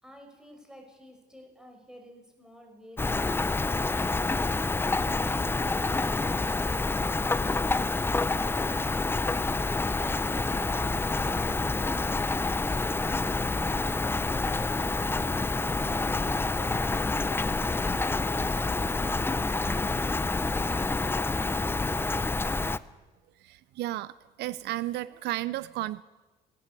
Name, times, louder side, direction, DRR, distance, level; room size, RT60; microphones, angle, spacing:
voice 1, 0.0-3.4 5.2-7.8 9.7-13.7, equal, 5° right, 3 dB, 5.7 m, -51 dB
Rain, 3.0-22.8, left 3 dB, 15° left, 0.6 m, -28 dB
voice 2, 23.5-24.1 24.4-26.0, right 16 dB, 80° right, 17 dB, 0.6 m, -33 dB
18.0 x 17.5 x 8.4 m, 1.1 s
cardioid pair, 110°, 17 cm